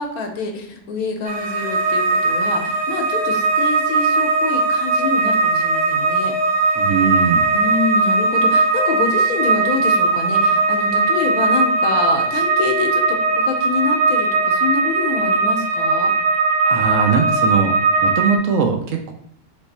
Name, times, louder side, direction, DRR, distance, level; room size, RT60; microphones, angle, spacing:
voice 1, 0.0-6.3 7.2-16.1, left 4 dB, 80° left, 3 dB, 1.2 m, -26 dB
sound 1, 1.3-18.4, right 3 dB, 85° right, 1.4 m, -18 dB
voice 2, 6.8-7.4 16.7-17.7 18.0-19.1, right 5 dB, 65° right, 3 dB, 0.9 m, -20 dB
3.3 x 3.1 x 3.9 m, 0.68 s
omnidirectional pair, 1.5 m